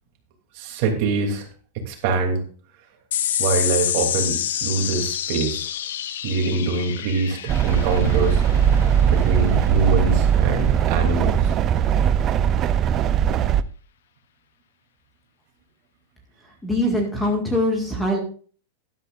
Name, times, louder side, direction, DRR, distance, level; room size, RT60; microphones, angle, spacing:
voice 1, 0.5-1.5 1.8-2.4 3.4-5.7 6.2-8.4 9.1-11.5, right 3 dB, 40° right, 3 dB, 2.9 m, -24 dB
sound 1, 3.1-9.9, left 10 dB, 75° left, 0.8 m, -28 dB
sound 2, 7.5-13.6, right 9 dB, 25° right, 0.4 m, -20 dB
voice 2, 16.6-18.2, left 1 dB, 5° left, 1 dB, 1.9 m, -22 dB
12.5 x 11.5 x 2.5 m, 0.41 s
supercardioid pair, 165°, 0 cm